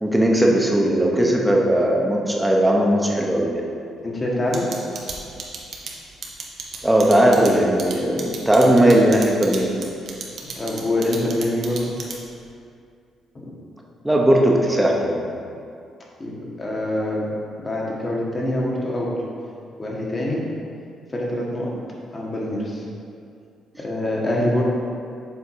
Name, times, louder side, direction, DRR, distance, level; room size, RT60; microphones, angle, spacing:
voice 1, 0.0-3.6 6.8-9.7 14.0-15.4, right 1 dB, 10° right, -1 dB, 1.0 m, -18 dB
voice 2, 4.0-4.8 10.6-11.9 13.3-13.5 16.2-17.3 17.6-19.2 19.8-20.4 21.1-21.7 22.1-22.8 23.8-24.6, left 1 dB, 30° left, -3 dB, 1.4 m, -25 dB
sound 1, 4.5-12.4, right 5 dB, 60° right, 1.0 m, -33 dB
7.1 x 3.7 x 4.6 m, 2.4 s
cardioid pair, 90°, 0 cm